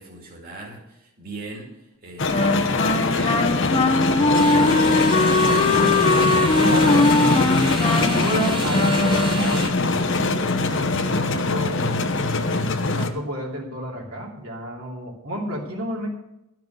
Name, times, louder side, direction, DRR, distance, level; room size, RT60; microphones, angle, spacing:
voice 1, 0.0-5.2 6.3-6.4, right 2 dB, 40° right, -2 dB, 2.4 m, -39 dB
sound 1, 2.2-13.1, left 3 dB, 55° left, 1.1 m, -22 dB
Wind instrument woodwind instrument, 2.3-9.6, left 2 dB, 25° left, 0.8 m, -21 dB
sound 2, 4.3-9.7, right 3 dB, 20° right, 1.1 m, -33 dB
voice 2, 5.7-7.4 7.9-12.0 12.5-16.1, right 1 dB, 75° right, -2 dB, 2.9 m, -31 dB
12.5 x 6.0 x 9.2 m, 0.86 s
head